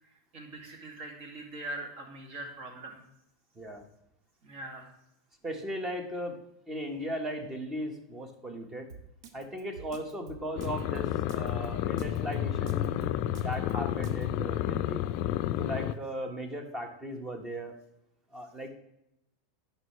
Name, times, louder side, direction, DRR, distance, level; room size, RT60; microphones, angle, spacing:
voice 1, 0.3-3.0 4.4-4.9, right 2 dB, 50° right, 2 dB, 2.2 m, -42 dB
voice 2, 5.4-6.4 6.7-8.9 9.3-13.1 13.4-15.0 15.6-17.7 18.3-18.7, equal, 15° right, 5 dB, 1.3 m, -37 dB
Drum kit, 8.9-14.2, right 5 dB, 70° right, 0.9 m, -47 dB
sound 1, 10.6-15.9, left 12 dB, 50° left, 0.4 m, -31 dB
11.0 x 5.5 x 3.3 m, 0.82 s
supercardioid pair, 125°, 2 cm